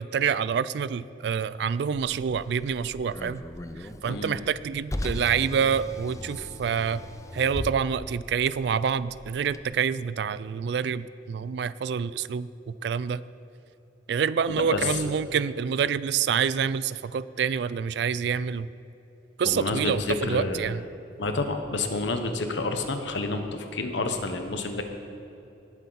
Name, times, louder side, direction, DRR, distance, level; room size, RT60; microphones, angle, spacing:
voice 1, 0.0-3.4 4.0-7.0 7.3-12.5 12.8-13.2 14.1-18.7 19.4-20.8, right 7 dB, 60° right, 17 dB, 0.3 m, -27 dB
Car, 1.9-9.6, left 1 dB, 15° left, 0.4 m, -38 dB
voice 2, 14.5-15.0 19.4-20.8 21.2-24.8, left 3 dB, 75° left, 6 dB, 1.1 m, -29 dB
19.0 x 8.3 x 4.1 m, 2.9 s
head